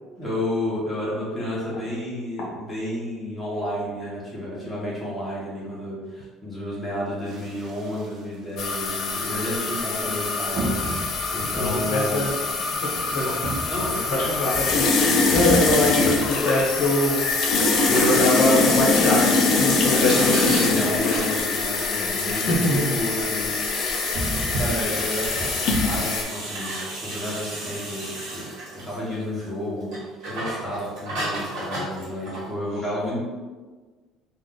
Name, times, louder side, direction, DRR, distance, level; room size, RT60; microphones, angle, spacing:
voice 1, 0.2-10.8 11.3-12.3 13.7-14.3 15.0-15.2 20.7-23.6 24.3-28.5 28.7-33.2, left 1 dB, 5° left, -9 dB, 0.9 m, -31 dB
sound 1, 7.2-8.5 9.0-9.3 10.6-17.3 17.7-19.9 20.4-20.5 20.6-20.7 21.2-21.3 21.6-21.8 22.1-22.5 22.9-23.1 23.8-26.0, right 1 dB, 50° right, 0.6 m, -34 dB
sound 2, 8.6-26.2, left 3 dB, 45° left, 0.4 m, -23 dB
voice 2, 11.6-12.3 12.8-13.4 14.1-17.2 17.9-20.7 22.3-23.3, left 1 dB, 70° left, -4 dB, 0.8 m, -24 dB
sound 3, 17.8-19.0 20.0-21.4 23.3-29.5 29.8-32.6, right 1 dB, 65° right, 1.2 m, -34 dB
2.4 x 2.3 x 3.7 m, 1.4 s
cardioid pair, 155°, 0 cm